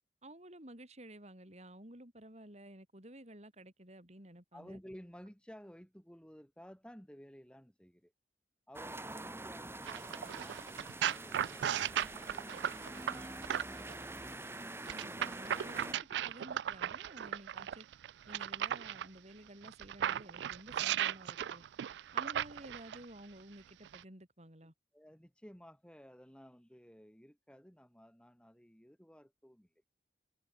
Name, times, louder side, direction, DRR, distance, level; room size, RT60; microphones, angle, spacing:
voice 1, 0.2-4.8 14.9-17.9 18.3-21.6 22.1-24.7, right 1 dB, 40° right, 7.3 m, -53 dB
voice 2, 4.5-8.1 8.7-12.0 24.6-29.7, equal, 5° left, 3.1 m, -55 dB
sound 1, 8.7-15.9, right 2 dB, 15° right, 3.5 m, -45 dB
sound 2, 9.9-13.9 14.9-19.1 19.6-23.0 23.8-24.0, right 10 dB, 75° right, 0.3 m, -36 dB
head